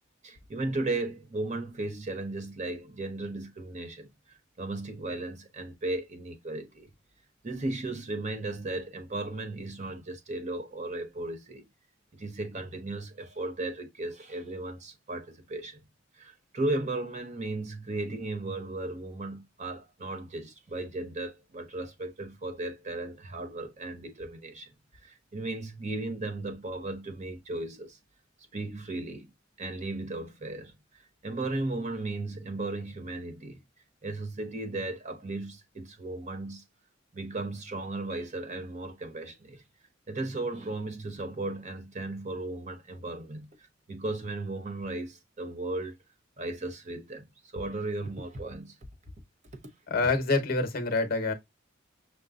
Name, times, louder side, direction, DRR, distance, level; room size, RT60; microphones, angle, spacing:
voice 1, 0.2-4.1 4.6-6.9 7.4-11.7 12.1-15.8 16.2-24.7 25.0-28.0 28.5-29.3 29.6-30.7 31.2-33.6 34.0-36.6 37.1-39.6 40.1-43.5 43.9-46.0 46.4-47.3 47.5-48.8, right 2 dB, 35° right, 0.7 m, -35 dB
voice 2, 49.9-51.3, left 3 dB, 50° left, 0.9 m, -26 dB
6.6 x 2.2 x 2.3 m
head